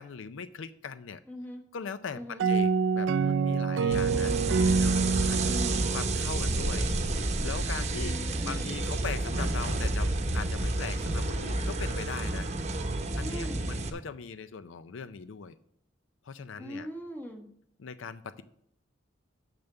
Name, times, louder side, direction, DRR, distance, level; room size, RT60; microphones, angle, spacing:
voice 1, 0.0-1.2 1.7-4.3 4.6-5.5 5.9-6.9 7.4-12.5 13.2-15.6 16.2-16.9 17.8-18.4, left 6 dB, 80° left, 13 dB, 0.5 m, -40 dB
voice 2, 1.3-1.6 2.1-2.5 4.0-4.5 5.4-5.9 7.9-8.7 13.2-13.6 16.6-17.5, equal, 10° left, 2 dB, 1.5 m, -41 dB
sound 1, 2.4-7.0, right 5 dB, 70° right, 0.4 m, -27 dB
sound 2, 3.9-13.9, right 2 dB, 35° right, 0.9 m, -30 dB
7.0 x 6.7 x 6.8 m, 0.72 s
head